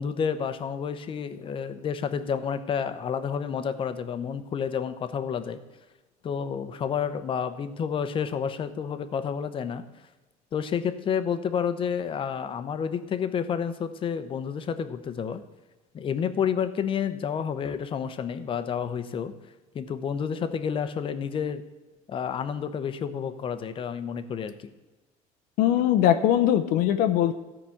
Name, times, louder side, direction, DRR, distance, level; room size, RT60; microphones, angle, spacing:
voice 1, 0.0-5.6 6.2-9.8 10.5-15.4 15.9-19.3 19.7-21.6 22.1-24.7, left 7 dB, 35° left, 11 dB, 0.8 m, -30 dB
voice 2, 25.6-27.3, left 11 dB, 70° left, 8 dB, 0.7 m, -21 dB
13.5 x 5.0 x 7.1 m, 1.1 s
cardioid pair, 135°, 15 cm